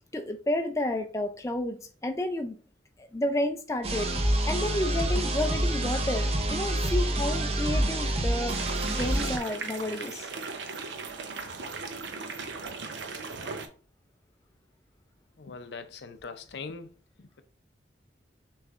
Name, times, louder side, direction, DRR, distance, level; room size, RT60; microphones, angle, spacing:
voice 1, 0.1-2.6 3.0-10.3, left 1 dB, 15° left, 0.4 m, -31 dB
sound 1, 3.8-9.4, right 1 dB, 35° right, 0.7 m, -27 dB
sound 2, 8.5-13.7, right 4 dB, 80° right, 0.7 m, -38 dB
voice 2, 15.4-16.9 17.2-17.4, left 4 dB, 70° left, 0.5 m, -41 dB
6.4 x 3.1 x 2.4 m
head